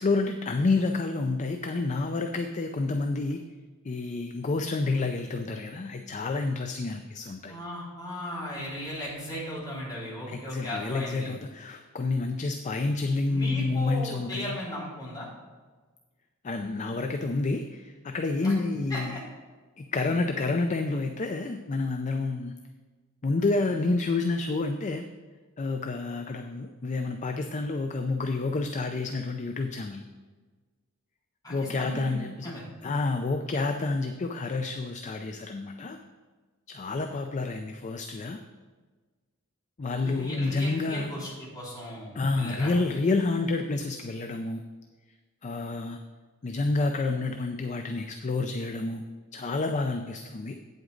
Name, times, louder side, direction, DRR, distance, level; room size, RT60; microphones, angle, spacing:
voice 1, 0.0-3.4 3.8-7.5 10.3-14.6 16.4-19.2 19.8-22.5 23.2-25.0 25.6-30.0 31.5-36.0 36.7-38.4 39.8-41.1 42.1-44.6 45.4-46.0 46.4-49.0 49.3-50.5, left 3 dB, 35° left, 5 dB, 0.4 m, -29 dB
voice 2, 7.5-11.4 13.3-15.3 18.4-18.5 18.9-19.2 31.4-32.2 32.4-32.6 40.0-42.7, equal, 20° left, -6 dB, 2.9 m, -36 dB
8.6 x 7.9 x 3.9 m, 1.4 s
head